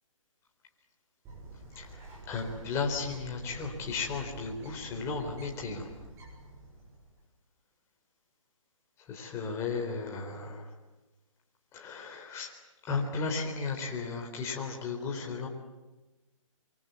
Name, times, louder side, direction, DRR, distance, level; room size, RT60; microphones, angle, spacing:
Bird, 1.2-7.2, right 2 dB, 15° right, 7.1 m, -48 dB
voice 1, 2.3-5.9 9.1-10.7 11.7-12.5 12.8-15.5, left 4 dB, 15° left, 1 dB, 4.1 m, -35 dB
27.0 x 24.0 x 8.4 m, 1.2 s
hypercardioid pair, 155°, 17 cm